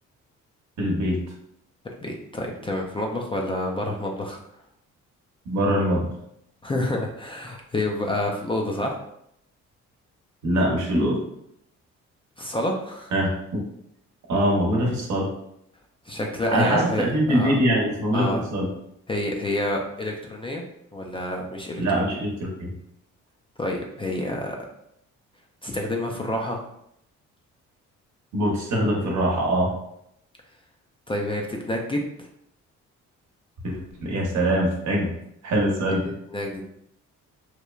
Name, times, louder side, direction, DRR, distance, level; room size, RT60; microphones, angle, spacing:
voice 1, 0.8-1.2 5.4-6.1 10.4-11.2 13.1-13.6 14.3-15.3 16.5-18.7 21.8-22.7 28.3-29.7 33.6-33.7 34.0-35.1 35.4-36.0, right 1 dB, 65° right, -1 dB, 0.9 m, -23 dB
voice 2, 2.0-4.4 6.6-9.0 12.4-13.1 16.1-17.5 18.1-18.4 19.1-20.6 20.9-21.8 23.6-24.6 25.6-26.6 31.1-32.3 35.9-36.7, left 1 dB, 20° left, 0 dB, 0.3 m, -28 dB
3.0 x 2.1 x 2.3 m, 0.75 s
cardioid pair, 90°, 30 cm